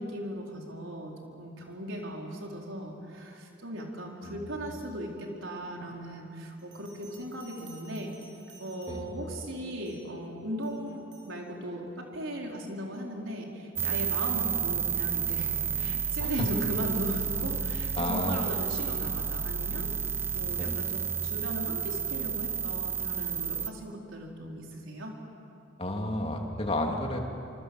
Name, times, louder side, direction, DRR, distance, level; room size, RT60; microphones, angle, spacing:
voice 1, 0.0-8.1 8.6-19.9 20.3-25.1, equal, 85° right, 0 dB, 4.6 m, -37 dB
Bell, 6.6-9.3 9.8-10.2 10.6-11.3, right 3 dB, 65° right, 6.3 m, -55 dB
sound 1, 13.8-23.7, right 7 dB, 10° right, 0.6 m, -31 dB
voice 2, 18.0-18.5 20.6-20.8 25.8-27.2, left 1 dB, 30° left, 2 dB, 2.9 m, -32 dB
26.5 x 25.0 x 8.0 m, 2.7 s
head